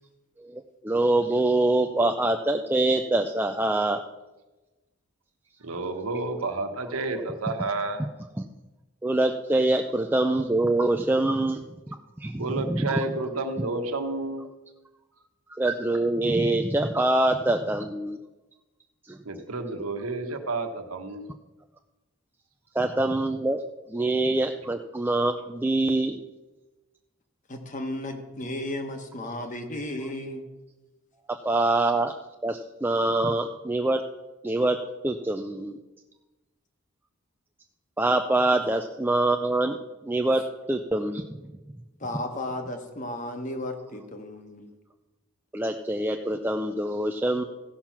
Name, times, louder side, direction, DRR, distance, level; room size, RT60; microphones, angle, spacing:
voice 1, 0.4-4.0 8.4-8.5 9.0-11.6 12.2-13.1 15.6-18.2 19.0-19.2 22.7-23.6 23.9-26.2 31.4-32.1 32.4-34.0 34.4-34.8 35.0-35.8 38.0-39.8 40.0-40.4 40.7-41.2 45.5-47.4, right 2 dB, 10° right, 4 dB, 0.3 m, -24 dB
voice 2, 5.6-8.1 12.4-14.4 19.2-21.3, right 3 dB, 85° right, 6 dB, 1.2 m, -30 dB
voice 3, 27.5-30.4 42.0-44.7, left 1 dB, 35° left, 5 dB, 1.2 m, -34 dB
15.0 x 5.9 x 5.8 m, 1.1 s
head